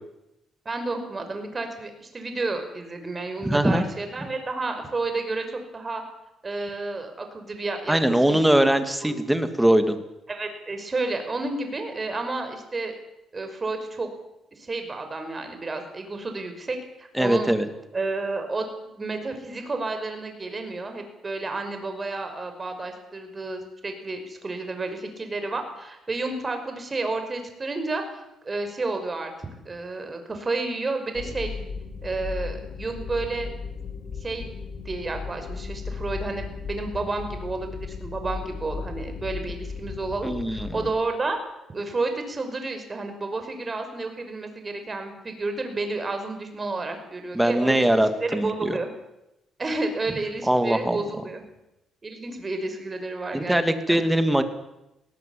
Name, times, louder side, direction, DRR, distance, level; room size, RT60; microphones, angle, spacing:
voice 1, 0.7-5.5 5.7-6.0 6.4-8.5 9.0-9.2 10.3-12.9 13.3-14.1 14.6-17.5 17.9-31.5 32.0-33.5 34.2-34.6 34.9-41.4 41.7-48.9 49.6-51.4 52.0-53.6 53.9-54.0, right 3 dB, 30° right, 6 dB, 5.5 m, -31 dB
voice 2, 3.4-3.8 7.9-10.0 17.1-17.7 40.2-40.7 47.3-48.8 50.5-51.0 53.3-54.4, right 1 dB, 5° right, 8 dB, 2.5 m, -21 dB
sound 1, 31.1-40.9, left 5 dB, 55° left, 4.9 m, -36 dB
19.5 x 17.5 x 8.7 m, 0.91 s
cardioid pair, 90°, 0 cm